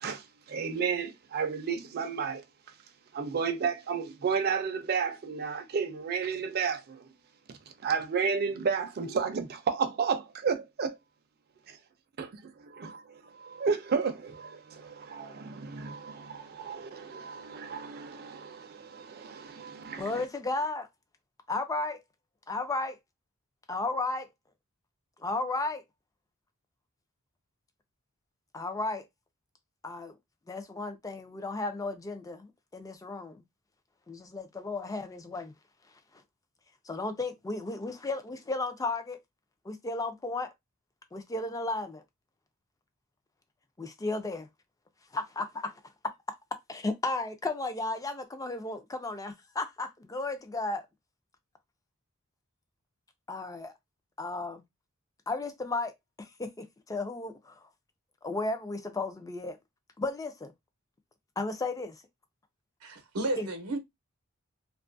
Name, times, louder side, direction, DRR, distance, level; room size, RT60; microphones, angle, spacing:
voice 1, 0.0-2.4 3.1-7.1 7.8-10.9 11.7-11.8 12.2-12.3 12.8-13.0 13.4-20.2, right 6 dB, 45° right, 0.4 m, -32 dB
voice 2, 19.9-20.9 21.5-22.0 22.5-23.0 23.7-24.3 25.2-25.8 28.5-29.0 29.8-30.1 30.5-33.4 34.1-35.5 36.9-39.2 39.7-40.5 41.1-42.0 43.8-44.5 45.1-45.7 46.7-50.8 53.3-53.7 54.2-54.6 55.3-55.9 56.2-57.6 58.2-59.6 60.0-60.5 61.4-62.0 63.4-63.5, left 2 dB, 15° left, 0.4 m, -34 dB
voice 3, 62.8-63.8, right 1 dB, 85° right, 0.7 m, -32 dB
2.5 x 2.3 x 2.5 m
head